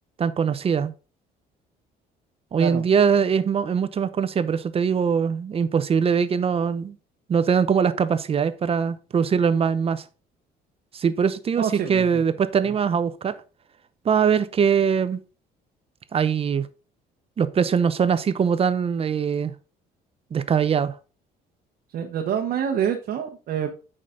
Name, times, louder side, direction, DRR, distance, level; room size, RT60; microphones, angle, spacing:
voice 1, 0.2-0.9 2.5-7.0 7.3-10.0 10.9-13.4 14.0-15.2 16.1-16.7 17.4-19.5 20.3-21.0, right 6 dB, 35° right, 0.7 m, -22 dB
voice 2, 11.6-12.2 21.9-23.7, right 8 dB, 60° right, 1.0 m, -27 dB
8.6 x 5.0 x 3.8 m
cardioid pair, 110°, 17 cm